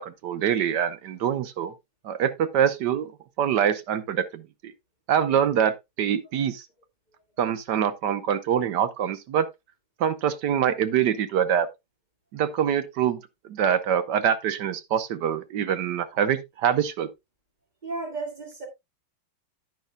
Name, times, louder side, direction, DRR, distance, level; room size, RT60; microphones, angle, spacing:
voice 1, 0.0-1.7 2.0-3.1 3.4-4.7 5.1-6.6 7.4-9.5 10.0-11.7 12.3-17.1, right 9 dB, 65° right, 1.3 m, -25 dB
voice 2, 17.8-18.7, right 3 dB, 20° right, 1.9 m, -33 dB
10.5 x 9.1 x 2.2 m
omnidirectional pair, 2.3 m